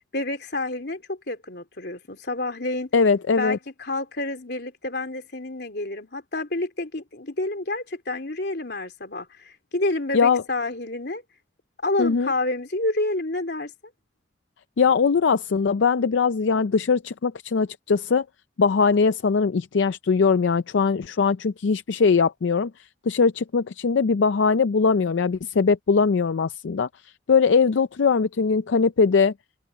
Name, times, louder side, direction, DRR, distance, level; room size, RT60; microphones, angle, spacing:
voice 1, 0.1-2.9 3.4-11.2 11.8-13.7, left 2 dB, 60° left, 3.6 m, -29 dB
voice 2, 2.9-3.6 10.1-10.4 12.0-12.3 14.8-18.3 18.6-29.3, left 5 dB, 85° left, 0.5 m, -21 dB
head